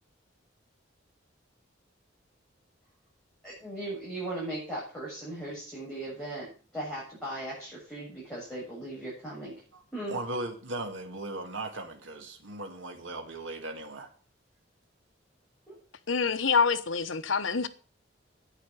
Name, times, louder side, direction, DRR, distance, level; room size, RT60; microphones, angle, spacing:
voice 1, 3.4-9.6 9.9-10.2 15.7-15.8, right 1 dB, 5° left, 7.4 m, -38 dB
voice 2, 10.1-14.1, right 2 dB, 85° right, 2.2 m, -37 dB
voice 3, 16.1-17.7, left 5 dB, 85° left, 1.1 m, -26 dB
10.5 x 9.5 x 7.4 m
head